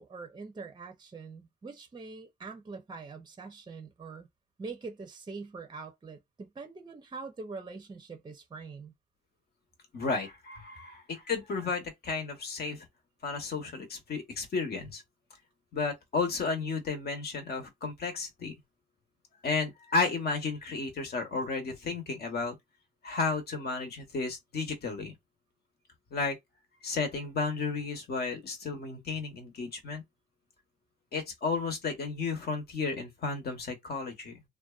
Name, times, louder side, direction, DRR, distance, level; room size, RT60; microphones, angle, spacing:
voice 1, 0.0-4.3 4.6-8.9, right 4 dB, 20° right, 0.6 m, -44 dB
voice 2, 9.9-12.9 13.2-15.0 15.7-18.5 19.4-22.6 23.0-25.1 26.1-26.4 26.8-30.0 31.1-34.4, left 4 dB, 55° left, 1.0 m, -33 dB
2.5 x 2.2 x 2.3 m
cardioid pair, 90°, 20 cm